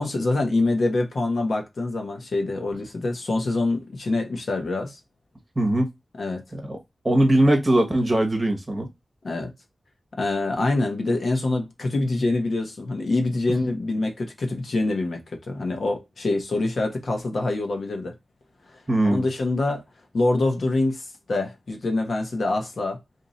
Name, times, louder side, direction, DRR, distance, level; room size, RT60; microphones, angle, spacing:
voice 1, 0.0-5.0 6.2-6.4 9.2-9.5 10.2-15.2 15.5-18.1 19.0-19.8 20.1-23.0, left 2 dB, 70° left, 1.0 m, -25 dB
voice 2, 5.6-5.9 6.5-6.8 7.0-8.9 18.9-19.3, right 1 dB, 25° right, 1.1 m, -20 dB
2.8 x 2.6 x 4.0 m
wide cardioid pair, 120°, 0 cm